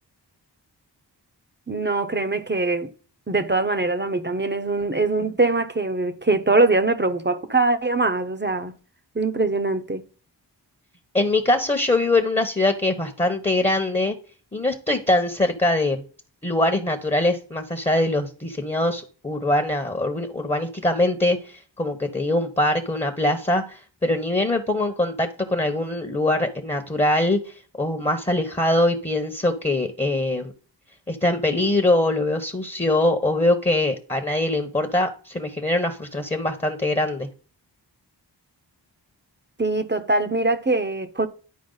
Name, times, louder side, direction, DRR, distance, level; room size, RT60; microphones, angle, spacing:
voice 1, 1.7-2.9 3.3-8.7 9.1-10.0 39.6-41.3, right 3 dB, 25° right, 0.8 m, -22 dB
voice 2, 11.1-14.2 14.5-16.0 16.4-30.5 31.1-37.3, left 2 dB, 15° left, 1.0 m, -23 dB
10.5 x 4.6 x 3.9 m
wide cardioid pair, 50°, 43 cm